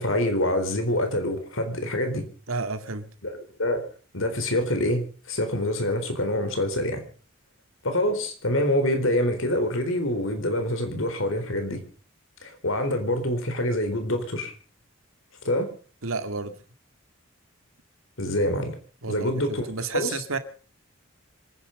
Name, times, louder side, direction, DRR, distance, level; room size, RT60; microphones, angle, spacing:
voice 1, 0.0-2.2 3.2-3.3 3.6-3.8 4.1-7.0 7.8-11.8 12.4-14.5 15.4-15.7 18.2-18.8 19.1-19.7 19.9-20.1, left 1 dB, 75° left, 4.0 m, -26 dB
voice 2, 2.5-3.1 16.0-16.6 19.0-20.4, right 3 dB, 85° right, 2.0 m, -31 dB
26.5 x 10.0 x 5.2 m
head